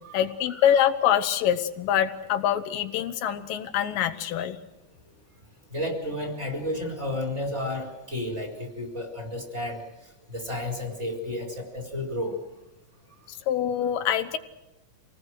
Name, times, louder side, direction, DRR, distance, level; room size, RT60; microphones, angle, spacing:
voice 1, 0.1-4.6 13.3-14.4, left 10 dB, 85° left, 8 dB, 2.6 m, -25 dB
voice 2, 5.7-9.8 10.3-12.4, left 1 dB, 20° right, 1 dB, 4.5 m, -32 dB
26.5 x 19.0 x 6.4 m, 0.98 s
omnidirectional pair, 3.8 m